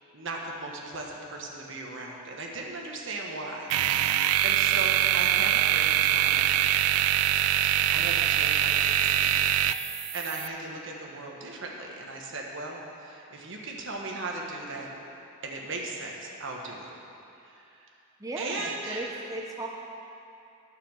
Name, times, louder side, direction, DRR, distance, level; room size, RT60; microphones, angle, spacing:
voice 1, 0.1-6.6 7.9-9.4 9.8-14.9 15.4-16.9 17.4-17.9 18.4-19.1, right 2 dB, 60° right, 0 dB, 1.3 m, -37 dB
sound 1, 3.7-10.5, right 12 dB, 80° right, 0.3 m, -24 dB
voice 2, 18.2-19.7, right 2 dB, 15° right, -1 dB, 0.5 m, -36 dB
9.1 x 6.9 x 6.7 m, 2.7 s
head